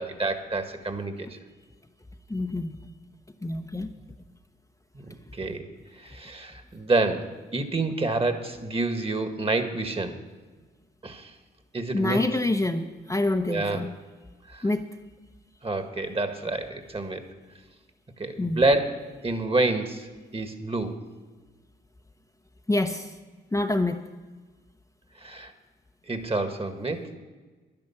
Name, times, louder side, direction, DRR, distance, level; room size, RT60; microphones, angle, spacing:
voice 1, 0.0-1.4 4.9-5.7 6.0-10.2 11.0-11.3 11.7-12.2 13.5-13.9 14.5-14.7 15.6-17.2 18.2-21.0 25.2-25.5 26.1-27.1, right 2 dB, 25° right, 8 dB, 1.8 m, -28 dB
voice 2, 2.3-2.8 3.4-3.9 11.9-13.9 14.6-14.9 18.4-18.6 22.7-23.1 23.5-24.0, left 2 dB, 15° left, 5 dB, 0.8 m, -26 dB
10.5 x 10.5 x 7.2 m, 1.3 s
supercardioid pair, 60°, 21 cm